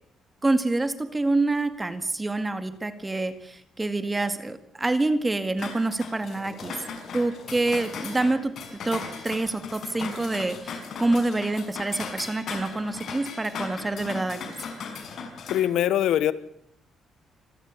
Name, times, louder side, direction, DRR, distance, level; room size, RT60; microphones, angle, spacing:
voice 1, 0.4-6.8 7.1-8.5 8.8-14.6, right 2 dB, 20° right, 11 dB, 2.0 m, -27 dB
sound 1, 5.6-15.6, left 5 dB, 65° left, 5.7 m, -37 dB
voice 2, 15.5-16.3, left 11 dB, 80° left, 16 dB, 1.2 m, -22 dB
26.5 x 13.5 x 8.6 m, 0.71 s
cardioid pair, 90°, 0 cm